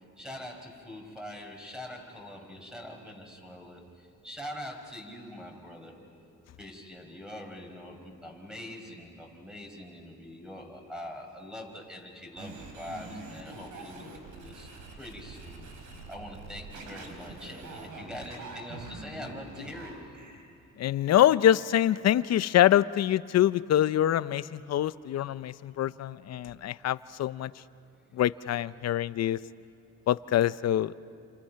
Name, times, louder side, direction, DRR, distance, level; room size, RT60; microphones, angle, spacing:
voice 1, 0.2-6.0 6.6-14.7 15.0-15.7 16.1-20.0, left 1 dB, ahead, 1 dB, 5.1 m, -43 dB
sound 1, 12.4-20.4, right 2 dB, 80° right, 4.3 m, -44 dB
voice 2, 20.8-27.5 28.1-29.4 30.1-30.9, left 12 dB, 60° left, 16 dB, 0.7 m, -25 dB
29.0 x 27.5 x 5.8 m, 2.5 s
cardioid pair, 90°, 30 cm